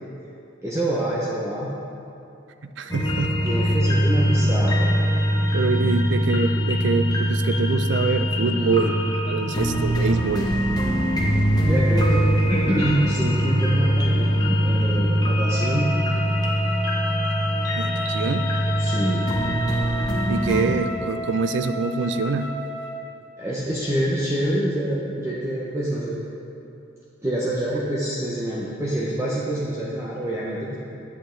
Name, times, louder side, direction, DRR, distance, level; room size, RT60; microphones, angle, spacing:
voice 1, 0.6-1.7 3.4-4.8 8.5-9.0 11.6-15.9 18.8-19.3 23.4-26.2 27.2-30.8, right 1 dB, 15° right, -6 dB, 0.8 m, -26 dB
voice 2, 2.8-3.3 5.5-8.9 9.2-10.5 17.8-18.4 20.3-22.5, right 4 dB, 65° right, 9 dB, 0.4 m, -25 dB
sound 1, 2.9-20.6, equal, 20° left, 0.9 m, -22 dB
Wind instrument woodwind instrument, 15.4-23.1, equal, 80° left, 1.5 m, -32 dB
8.5 x 8.2 x 3.8 m, 2.7 s
head